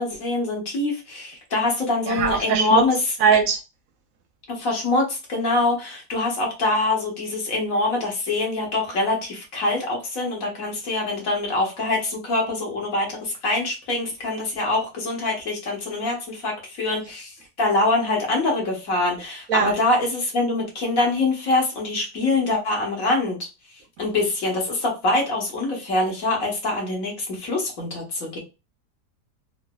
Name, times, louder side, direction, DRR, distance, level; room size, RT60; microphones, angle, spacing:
voice 1, 0.0-3.1 4.5-17.3 17.6-23.4 24.0-28.4, left 2 dB, 60° left, 0 dB, 1.6 m, -24 dB
voice 2, 2.1-2.8 3.2-3.6 19.5-19.7, right 6 dB, 70° right, 6 dB, 0.9 m, -20 dB
3.9 x 2.6 x 2.2 m, 0.28 s
omnidirectional pair, 1.7 m